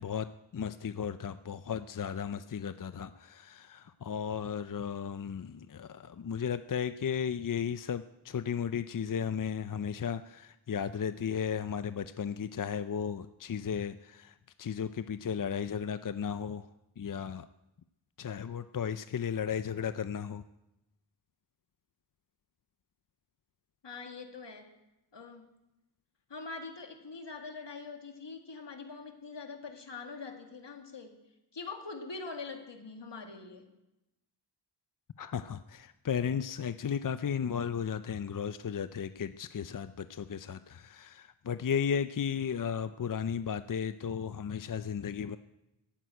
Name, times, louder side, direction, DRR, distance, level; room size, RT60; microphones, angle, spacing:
voice 1, 0.0-16.7 17.0-17.5 18.2-20.4 35.2-45.4, left 7 dB, 50° left, 12 dB, 0.6 m, -35 dB
voice 2, 23.8-24.7 25.1-25.5 26.3-31.2 31.5-33.7, left 4 dB, 80° left, 4 dB, 2.2 m, -43 dB
15.0 x 9.1 x 9.1 m, 0.94 s
wide cardioid pair, 75°, 42 cm